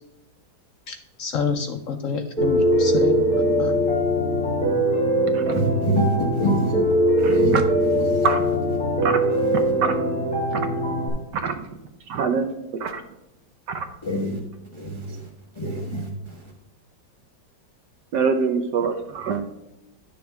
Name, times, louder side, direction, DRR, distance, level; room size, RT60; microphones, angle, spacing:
voice 1, 0.9-3.7, left 5 dB, 65° left, 6 dB, 0.8 m, -28 dB
Piano, 2.4-11.1, equal, 5° left, 2.8 m, -21 dB
voice 2, 5.5-6.1 6.4-6.7 7.2-7.6 8.1-8.2 14.0-14.4 14.8-15.0 15.6-16.1, right 1 dB, 20° left, -1 dB, 0.8 m, -25 dB
voice 3, 7.2-7.6 8.2-8.4 9.0-9.2 9.8-10.0 10.5-10.7 11.4-11.7 12.1-13.0 13.7-13.8 18.1-19.4, right 5 dB, 70° right, 7 dB, 1.3 m, -24 dB
10.5 x 6.4 x 3.4 m, 0.91 s
omnidirectional pair, 2.0 m